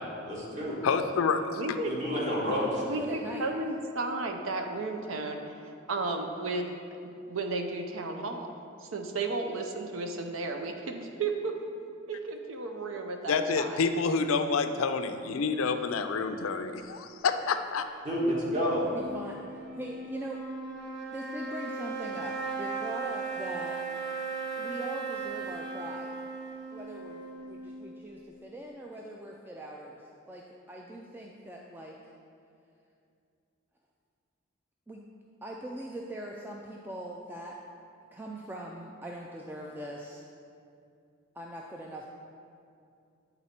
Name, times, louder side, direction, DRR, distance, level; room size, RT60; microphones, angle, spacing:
voice 1, 0.3-0.8 1.8-2.8 18.0-18.8, equal, 35° right, -6 dB, 1.7 m, -29 dB
voice 2, 0.8-1.6 13.3-17.8, left 5 dB, 85° left, 9 dB, 0.4 m, -28 dB
voice 3, 1.6-1.9 2.8-6.7 7.3-8.5 8.8-11.5 12.1-13.8, right 3 dB, 75° right, 4 dB, 0.6 m, -33 dB
voice 4, 2.7-3.5 18.5-20.4 21.1-23.8 24.6-26.1 26.7-32.0 34.9-35.0 35.4-37.6 38.1-40.3 41.3-42.1, right 1 dB, 10° right, -1 dB, 0.3 m, -41 dB
sound 1, 18.8-28.2, right 4 dB, 55° right, 1.0 m, -37 dB
9.8 x 4.0 x 4.3 m, 2.5 s
head